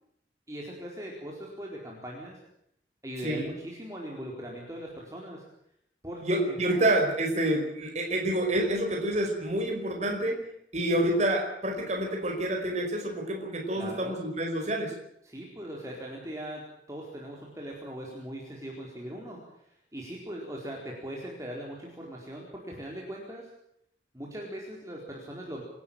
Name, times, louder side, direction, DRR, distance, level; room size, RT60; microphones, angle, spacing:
voice 1, 0.5-2.4 3.0-5.4 6.0-6.8 13.7-14.2 15.2-16.6 16.9-23.5 24.1-25.6, right 1 dB, 20° right, -2 dB, 4.4 m, -40 dB
voice 2, 6.2-15.0, right 1 dB, 40° right, 1 dB, 5.1 m, -28 dB
27.5 x 13.5 x 9.0 m, 0.73 s
head